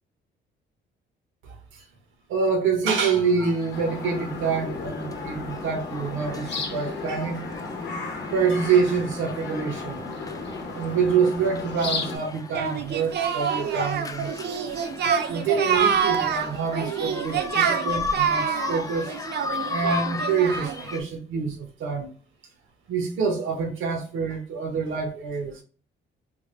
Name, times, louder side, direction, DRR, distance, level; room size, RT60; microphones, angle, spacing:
voice 1, 2.3-7.4 8.3-10.1 10.7-14.7 15.3-19.2 19.7-22.1 22.9-25.6, right 5 dB, 80° right, 1.0 m, -26 dB
sound 1, 2.9-21.0, left 4 dB, 20° left, 0.4 m, -37 dB
sound 2, 3.7-12.2, left 3 dB, 60° left, 0.8 m, -34 dB
Singing, 12.5-20.9, right 7 dB, 55° right, 0.5 m, -26 dB
3.4 x 2.2 x 3.2 m
cardioid pair, 90°, 20 cm